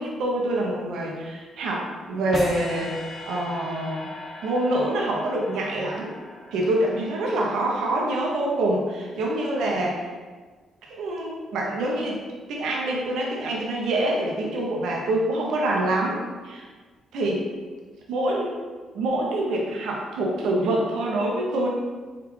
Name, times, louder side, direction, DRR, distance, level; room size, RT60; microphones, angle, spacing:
voice 1, 0.0-3.0 3.3-4.1 4.4-6.1 6.5-10.0 10.9-12.2 12.5-16.2 16.4-16.6 17.1-17.5 18.1-18.5 18.9-21.7, right 1 dB, 80° right, -2 dB, 0.6 m, -25 dB
sound 1, 2.3-7.5, left 2 dB, 40° left, 0.5 m, -39 dB
3.5 x 2.3 x 3.1 m, 1.4 s
cardioid pair, 90°, 0 cm